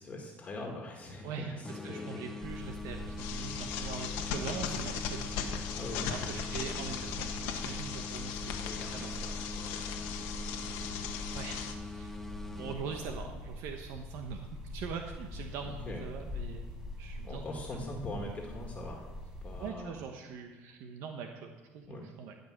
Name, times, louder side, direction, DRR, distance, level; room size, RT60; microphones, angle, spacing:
voice 1, 0.0-2.3 5.7-7.0 8.5-11.1 12.4-13.0 15.6-16.0 17.2-19.1 19.4-20.0 21.8-22.1, left 1 dB, 30° left, 1 dB, 1.8 m, -43 dB
sound 1, 1.6-13.4, left 3 dB, 5° left, 1.0 m, -44 dB
voice 2, 1.8-5.6 6.1-9.2 11.3-12.2 12.5-17.4 19.6-22.4, right 6 dB, 70° right, 4 dB, 1.0 m, -42 dB
sound 2, 2.4-19.7, left 1 dB, 15° right, 4.0 m, -43 dB
sound 3, 3.2-11.7, left 8 dB, 90° left, 1.4 m, -39 dB
16.0 x 5.4 x 7.3 m, 1.2 s
cardioid pair, 125°, 5 cm